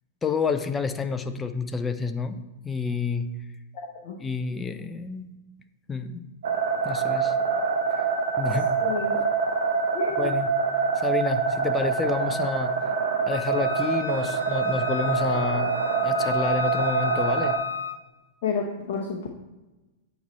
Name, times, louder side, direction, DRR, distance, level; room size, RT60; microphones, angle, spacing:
voice 1, 0.2-2.4 2.6-3.3 4.2-5.3 5.9-6.2 6.8-7.3 8.4-8.7 10.2-10.5 11.0-12.7 13.3-15.7 16.0-17.5, left 5 dB, 15° left, 9 dB, 0.6 m, -29 dB
voice 2, 3.7-4.2 8.8-9.2 9.9-10.3 18.4-19.3, left 5 dB, 45° left, -1 dB, 0.9 m, -30 dB
sound 1, 6.4-17.6, right 5 dB, 60° right, 0.8 m, -25 dB
Wind instrument woodwind instrument, 13.3-18.0, left 7 dB, 75° left, 0.6 m, -33 dB
8.2 x 4.3 x 4.2 m, 1.1 s
figure-of-eight pair, 95°, 0 cm